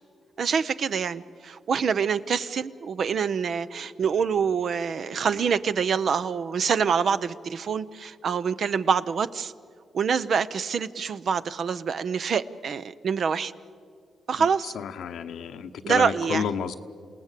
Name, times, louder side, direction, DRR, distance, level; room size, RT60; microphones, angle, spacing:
voice 1, 0.4-9.5 9.9-13.5 14.3-14.7 15.8-16.5, right 6 dB, 65° right, 13 dB, 0.7 m, -26 dB
voice 2, 14.8-16.7, left 7 dB, 85° left, 8 dB, 1.0 m, -31 dB
28.0 x 18.0 x 8.3 m, 2.2 s
cardioid pair, 70°, 0 cm